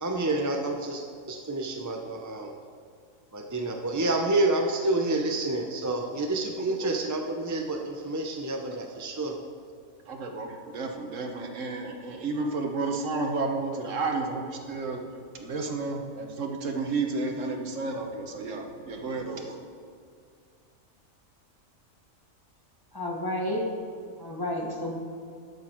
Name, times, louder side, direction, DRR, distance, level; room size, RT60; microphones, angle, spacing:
voice 1, 0.0-2.5 3.3-9.3, right 2 dB, 25° right, 2 dB, 0.4 m, -28 dB
voice 2, 10.1-15.0 15.3-19.6, right 3 dB, 70° right, 3 dB, 1.3 m, -32 dB
voice 3, 22.9-23.6 24.2-24.9, left 1 dB, 20° left, -2 dB, 1.2 m, -30 dB
11.5 x 6.9 x 4.4 m, 2.3 s
omnidirectional pair, 1.4 m